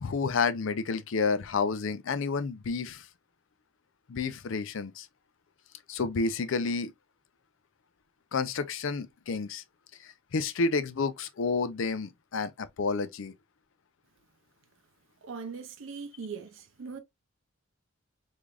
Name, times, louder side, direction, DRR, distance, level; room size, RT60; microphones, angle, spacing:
voice 1, 0.0-3.1 4.1-5.1 5.9-6.9 8.3-9.6 10.0-13.3, left 4 dB, 65° left, 0.5 m, -30 dB
voice 2, 15.2-17.0, right 5 dB, 65° right, 0.5 m, -40 dB
3.6 x 3.3 x 2.3 m
head